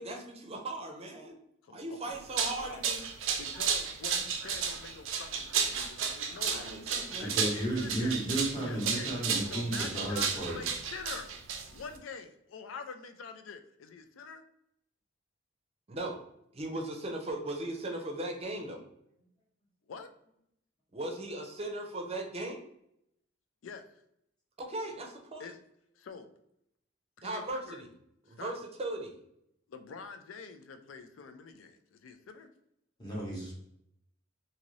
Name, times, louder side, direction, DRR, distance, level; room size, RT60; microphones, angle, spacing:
voice 1, 0.0-1.4 1.7-3.0 6.3-7.4 15.9-16.2 16.5-18.8 20.9-22.6 24.7-25.5 27.2-27.6 28.3-29.2, right 2 dB, 30° right, 2 dB, 0.6 m, -38 dB
voice 2, 1.6-2.2 2.6-2.9 3.4-6.7 7.2-8.3 8.6-9.2 9.5-11.3 11.7-14.4 19.9-20.1 23.6-24.0 25.4-25.6 26.0-26.3 27.2-27.8 28.3-28.6 29.7-32.5, left 5 dB, 90° left, 8 dB, 0.4 m, -46 dB
sound 1, 2.1-12.0, right 6 dB, 90° right, 0.4 m, -33 dB
voice 3, 7.2-10.6 33.0-33.5, right 1 dB, 20° left, -5 dB, 0.9 m, -33 dB
2.7 x 2.5 x 3.0 m, 0.76 s
head